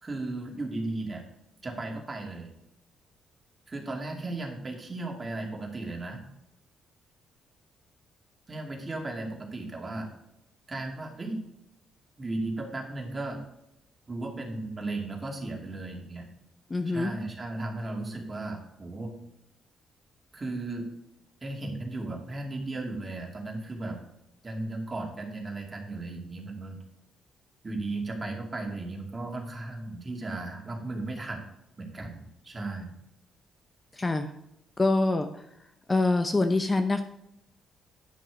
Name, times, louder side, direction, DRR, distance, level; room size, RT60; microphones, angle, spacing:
voice 1, 0.0-1.2 1.6-2.5 3.7-6.2 8.5-10.1 10.7-11.4 12.2-13.4 14.1-16.3 16.9-19.2 20.3-20.9 21.4-24.0 24.4-26.8 27.6-31.5 31.8-33.0, right 2 dB, 25° right, 1 dB, 2.5 m, -35 dB
voice 2, 16.7-17.1 33.9-34.3 34.8-35.5 35.9-37.0, left 2 dB, 25° left, 8 dB, 0.7 m, -25 dB
10.5 x 6.1 x 5.0 m, 0.83 s
cardioid pair, 90°, 0 cm